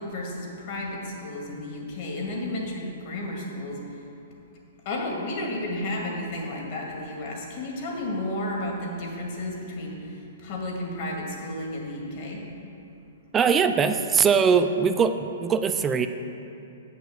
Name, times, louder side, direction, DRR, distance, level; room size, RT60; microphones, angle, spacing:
voice 1, 0.0-3.8 4.9-12.5, left 1 dB, 45° left, -1 dB, 2.1 m, -32 dB
voice 2, 13.3-16.1, right 6 dB, 15° right, 8 dB, 0.4 m, -21 dB
8.2 x 6.0 x 7.3 m, 2.7 s
hypercardioid pair, 160°, 0 cm